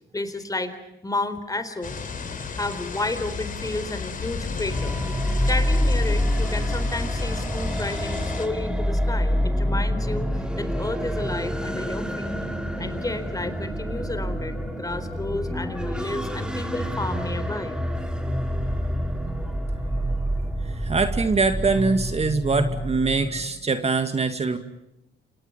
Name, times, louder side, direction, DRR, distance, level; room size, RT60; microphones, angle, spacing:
voice 1, 0.1-0.8 1.0-1.9 2.5-5.0 5.5-12.4 12.8-17.8, left 2 dB, 20° left, 11 dB, 4.0 m, -31 dB
sound 1, 1.8-8.5, left 5 dB, 45° left, 4.1 m, -32 dB
sound 2, 4.7-23.4, equal, 5° right, 3.7 m, -27 dB
voice 2, 20.7-24.6, right 4 dB, 30° right, 8 dB, 2.3 m, -23 dB
29.5 x 27.0 x 5.6 m, 0.83 s
cardioid pair, 90°, 20 cm